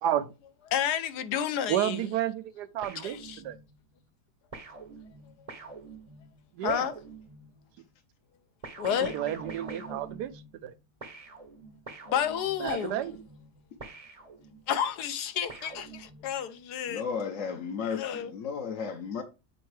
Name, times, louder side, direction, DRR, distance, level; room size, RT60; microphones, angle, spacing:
voice 1, 0.0-0.3 1.7-3.6 6.5-6.9 8.9-10.3 10.6-10.7 12.6-13.1, right 11 dB, 80° right, 1.1 m, -31 dB
voice 2, 0.7-2.1 3.0-3.4 6.6-6.9 8.8-9.2 12.1-13.0 14.7-17.0 17.9-18.3, left 9 dB, 75° left, 1.3 m, -30 dB
sound 1, 2.8-3.8 4.5-7.7 8.6-10.7 11.0-14.8 15.5-16.5, right 4 dB, 30° right, 0.7 m, -45 dB
voice 3, 16.9-19.2, left 6 dB, 60° left, 1.0 m, -34 dB
7.7 x 4.4 x 3.2 m
omnidirectional pair, 1.8 m